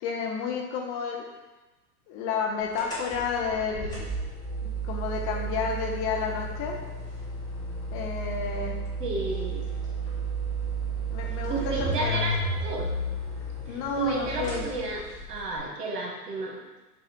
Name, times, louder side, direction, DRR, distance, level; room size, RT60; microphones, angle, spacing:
voice 1, 0.0-1.2 2.1-4.1 4.6-6.8 7.9-8.8 11.1-12.3 13.7-14.7, left 5 dB, 35° left, 1 dB, 0.5 m, -31 dB
sound 1, 2.7-15.6, right 2 dB, 10° left, 1.3 m, -33 dB
voice 2, 9.0-9.6 11.5-12.4 12.6-12.9 13.7-15.0 15.3-16.8, right 2 dB, 85° right, -1 dB, 1.2 m, -32 dB
4.3 x 2.4 x 4.1 m, 1.1 s
hypercardioid pair, 115°, 47 cm